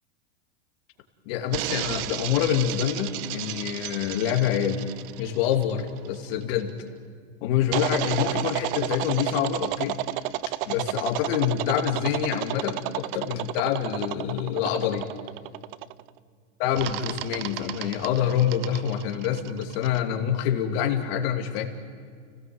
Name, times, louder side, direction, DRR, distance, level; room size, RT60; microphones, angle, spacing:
voice 1, 1.3-4.9 5.2-6.7 7.4-10.0 10.7-15.1 16.6-21.6, left 9 dB, 50° left, 4 dB, 2.8 m, -26 dB
sound 1, 1.5-6.4 7.7-16.1 16.8-20.0, right 16 dB, 50° right, 0.7 m, -32 dB
30.0 x 17.5 x 7.9 m, 2.1 s
supercardioid pair, 140°, 37 cm